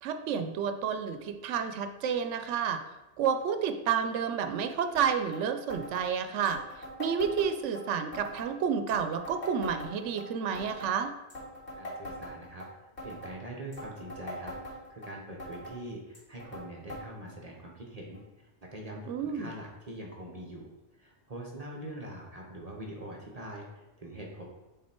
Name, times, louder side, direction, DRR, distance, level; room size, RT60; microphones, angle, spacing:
voice 1, 0.0-2.8 3.2-6.6 7.0-11.1 19.1-19.5, right 7 dB, 85° right, 8 dB, 0.9 m, -30 dB
sound 1, 4.9-5.1 5.3-5.4 5.7-6.1 6.4-7.8 8.1-8.5 8.9-10.2 10.5-10.9 11.3-12.7 13.0-13.3 13.7-15.1 15.4-15.8 16.1-16.6 16.9-17.0 17.3-17.4 18.1-18.2 19.0-19.1, equal, 65° left, 2.2 m, -42 dB
voice 2, 11.8-12.7 13.0-18.2 18.6-20.7 21.0-24.4, right 1 dB, 35° right, -1 dB, 0.9 m, -43 dB
7.4 x 3.8 x 4.3 m, 1.0 s
omnidirectional pair, 1.2 m